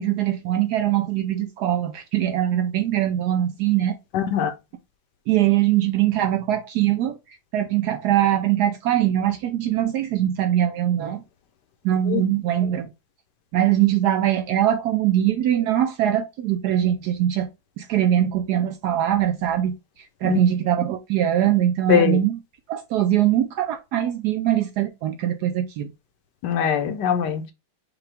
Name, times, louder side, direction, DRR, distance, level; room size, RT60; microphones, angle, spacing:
voice 1, 0.0-3.9 5.3-11.2 11.8-12.9 13.5-17.5 17.8-22.4 22.7-25.9, right 11 dB, 70° right, 1.0 m, -22 dB
voice 2, 4.1-4.5 12.1-12.2 20.2-20.4 21.9-22.2 26.4-27.4, left 8 dB, 70° left, 1.2 m, -21 dB
5.7 x 2.3 x 3.3 m
omnidirectional pair, 2.1 m